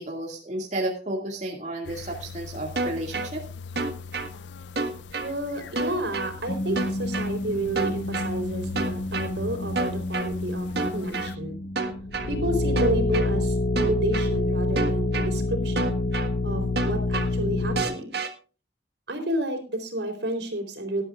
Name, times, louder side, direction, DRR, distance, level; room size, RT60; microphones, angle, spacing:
voice 1, 0.0-3.4, right 1 dB, 40° right, -1 dB, 2.4 m, -32 dB
sound 1, 1.8-11.4, left 5 dB, 90° left, 0.5 m, -41 dB
sound 2, 2.8-3.3 3.8-4.3 4.8-5.3 5.8-6.3 6.8-7.3 7.8-8.3 8.8-9.3 9.8-10.3 10.8-11.3 11.8-12.3 12.8-13.3 13.8-14.3 14.8-15.3 15.8-16.3 16.8-17.3 17.8-18.3, right 3 dB, 65° right, 1.7 m, -28 dB
voice 2, 5.2-11.6 12.3-15.9 16.4-18.2 19.1-21.0, right 1 dB, 80° right, 5 dB, 4.1 m, -30 dB
sound 3, 6.5-17.8, left 2 dB, 60° left, 1.0 m, -28 dB
19.0 x 12.0 x 2.5 m, 0.36 s
head